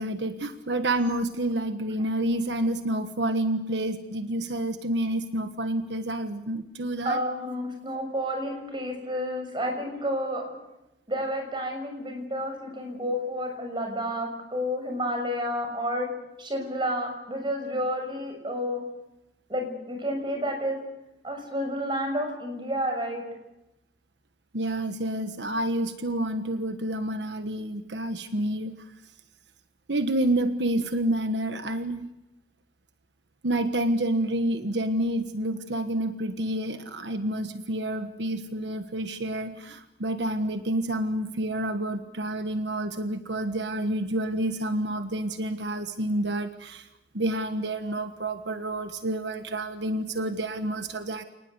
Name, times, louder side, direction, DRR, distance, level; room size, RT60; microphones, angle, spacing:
voice 1, 0.0-7.2 24.5-28.7 29.9-32.0 33.4-46.9 47.1-51.2, right 1 dB, 85° right, 8 dB, 1.4 m, -29 dB
voice 2, 7.0-10.6 11.1-16.1 16.4-18.8 19.5-20.8 21.2-23.2, equal, 30° right, 3 dB, 6.5 m, -30 dB
29.0 x 19.5 x 8.1 m, 0.94 s
head